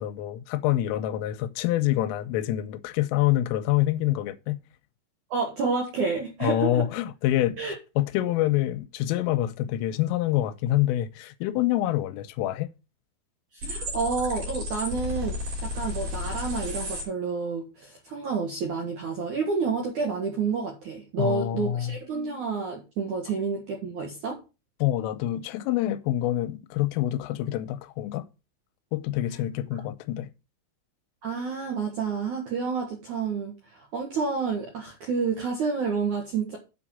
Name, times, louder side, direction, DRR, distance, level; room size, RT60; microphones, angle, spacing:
voice 1, 0.0-4.6 6.4-12.7 21.2-22.0 24.8-28.3 28.9-30.3, left 13 dB, 85° left, 3.2 m, -26 dB
voice 2, 5.3-6.9 7.6-7.7 13.5-15.4 15.6-24.4 31.2-36.6, right 5 dB, 65° right, 2.0 m, -29 dB
sound 1, 13.6-17.0, left 2 dB, 45° right, 4.3 m, -33 dB
8.2 x 5.1 x 7.2 m
omnidirectional pair, 5.8 m